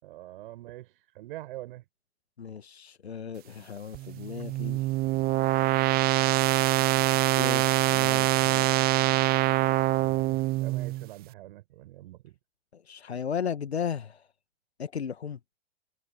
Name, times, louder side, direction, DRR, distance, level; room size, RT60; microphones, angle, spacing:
voice 1, 0.0-1.9 3.6-3.7 9.9-12.3, right 16 dB, 55° right, 7.0 m, -44 dB
voice 2, 2.4-4.9 7.4-8.7 12.7-14.3 14.8-15.4, left 7 dB, 80° left, 1.3 m, -35 dB
sound 1, 3.9-11.1, right 17 dB, 30° right, 0.8 m, -24 dB
figure-of-eight pair, 95°, 32 cm